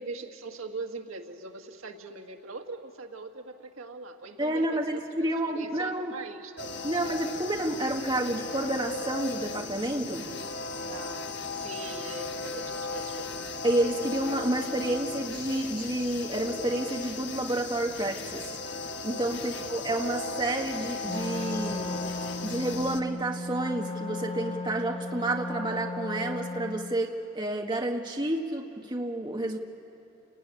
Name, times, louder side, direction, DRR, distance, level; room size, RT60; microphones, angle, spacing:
voice 1, 0.0-4.8 5.2-5.3 5.5-7.0 10.9-13.5 19.3-19.8, right 3 dB, 80° right, 4 dB, 1.7 m, -41 dB
voice 2, 4.4-6.2 6.8-10.3 13.6-22.0 22.4-29.6, right 1 dB, 20° right, 1 dB, 1.4 m, -30 dB
sound 1, 6.6-23.0, left 3 dB, 55° left, 1.2 m, -36 dB
Wind instrument woodwind instrument, 21.0-27.0, left 2 dB, 25° left, 0.7 m, -36 dB
29.5 x 17.5 x 10.0 m, 2.8 s
head